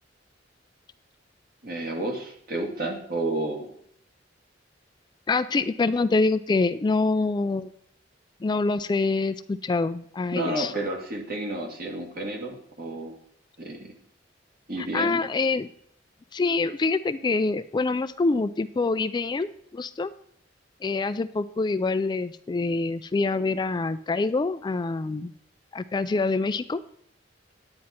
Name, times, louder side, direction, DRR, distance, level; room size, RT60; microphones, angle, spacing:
voice 1, 1.6-3.7 10.3-13.2 13.6-13.9 14.7-15.2, right 2 dB, 55° right, 2 dB, 2.1 m, -31 dB
voice 2, 5.3-7.7 8.4-10.7 14.8-15.7 16.3-20.1 20.8-25.3 25.7-26.8, left 3 dB, 25° left, 12 dB, 0.3 m, -25 dB
9.6 x 9.5 x 4.3 m, 0.69 s
head